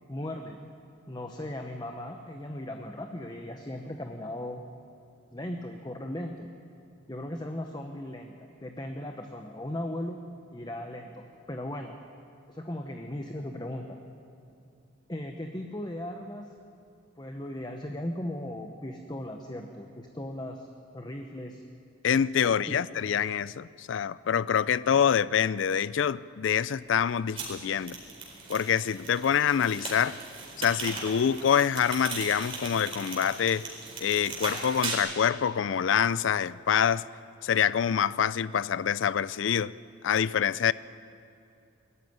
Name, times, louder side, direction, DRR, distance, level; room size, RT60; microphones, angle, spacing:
voice 1, 0.1-0.6 1.1-4.6 5.3-6.5 7.1-10.2 10.5-12.0 12.5-14.0 15.1-16.5 17.2-20.7 20.9-21.6 22.4-22.8, left 1 dB, 20° left, 0.9 m, -37 dB
voice 2, 22.0-28.0 28.5-30.2 30.6-33.7 34.0-37.0 37.4-39.7 40.0-40.7, left 8 dB, 65° left, 0.4 m, -26 dB
sound 1, 27.4-35.0, right 3 dB, 30° right, 4.4 m, -38 dB
20.5 x 14.0 x 9.4 m
head